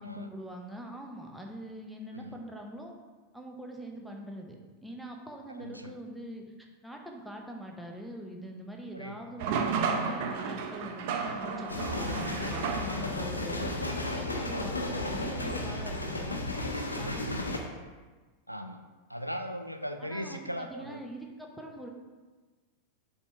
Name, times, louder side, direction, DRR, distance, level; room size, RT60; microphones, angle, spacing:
voice 1, 0.0-2.9 3.3-13.7 14.1-17.6 20.0-21.9, right 1 dB, 5° right, 1 dB, 0.9 m, -43 dB
voice 2, 5.5-5.9 8.9-9.2 14.9-15.0 16.7-17.5 18.5-18.8 19.1-21.0, equal, 90° right, 7 dB, 0.3 m, -39 dB
sound 1, 9.4-13.3, right 5 dB, 50° right, 0.6 m, -33 dB
sound 2, 11.7-17.6, left 2 dB, 80° left, 0.7 m, -33 dB
6.8 x 3.6 x 4.4 m, 1.3 s
figure-of-eight pair, 90°, 0 cm